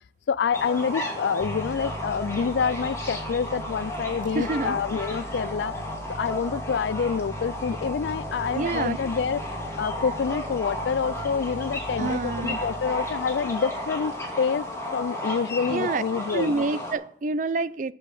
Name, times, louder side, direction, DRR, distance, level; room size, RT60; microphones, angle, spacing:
voice 1, 0.3-5.8 6.1-9.4 9.8-14.7 14.9-16.6, left 6 dB, 75° left, 0.4 m, -27 dB
sound 1, 0.5-16.9, left 1 dB, 15° left, 2.3 m, -34 dB
sound 2, 1.4-14.6, right 1 dB, ahead, 4.0 m, -40 dB
voice 2, 4.4-4.8 8.5-9.0 12.0-12.6 15.7-16.0 16.3-17.9, right 3 dB, 45° right, 0.4 m, -27 dB
8.2 x 8.0 x 7.0 m
head